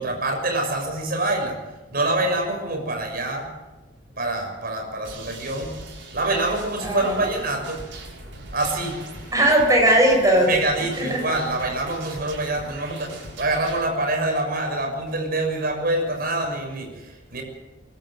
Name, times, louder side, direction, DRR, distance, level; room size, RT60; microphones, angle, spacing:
voice 1, 0.0-1.6 1.9-3.5 4.2-5.8 6.1-7.9 8.5-9.0 10.5-17.4, right 2 dB, 50° right, 2 dB, 6.6 m, -26 dB
sound 1, 5.0-13.8, right 2 dB, 75° right, 6.6 m, -40 dB
voice 2, 6.8-7.2 9.3-10.5 11.0-11.2, right 1 dB, 20° right, 0 dB, 6.5 m, -18 dB
25.0 x 12.5 x 9.2 m, 1.1 s
head